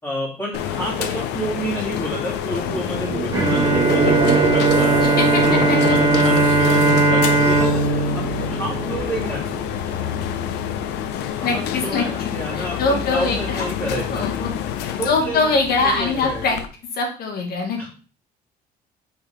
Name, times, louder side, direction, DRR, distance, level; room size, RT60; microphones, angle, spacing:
voice 1, 0.0-5.0 5.4-9.5 10.0-10.1 11.3-14.3 15.0-15.5 15.8-16.4 17.8-17.9, equal, 15° left, -9 dB, 3.0 m, -29 dB
sound 1, 0.5-16.7, left 9 dB, 90° left, 0.7 m, -28 dB
sound 2, 2.5-10.6, right 7 dB, 50° right, 0.8 m, -26 dB
Bowed string instrument, 3.3-9.5, right 2 dB, 30° right, 2.9 m, -19 dB
voice 2, 5.0-5.4 5.7-6.0 11.4-13.7 14.1-14.5 14.8-16.6 16.9-17.8, left 4 dB, 65° left, 3 dB, 2.0 m, -23 dB
6.0 x 5.1 x 3.6 m, 0.37 s
cardioid pair, 110°, 17 cm